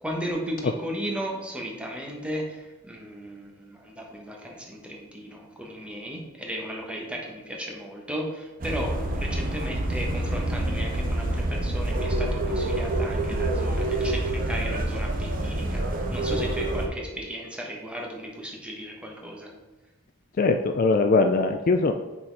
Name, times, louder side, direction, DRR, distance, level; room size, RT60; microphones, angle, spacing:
voice 1, 0.0-15.8 16.1-19.5, equal, 5° right, -1 dB, 1.0 m, -35 dB
sound 1, 8.6-16.9, right 1 dB, 40° right, 0.8 m, -27 dB
voice 2, 20.4-21.9, left 3 dB, 40° left, 6 dB, 0.3 m, -21 dB
6.1 x 4.1 x 4.5 m, 1.1 s
head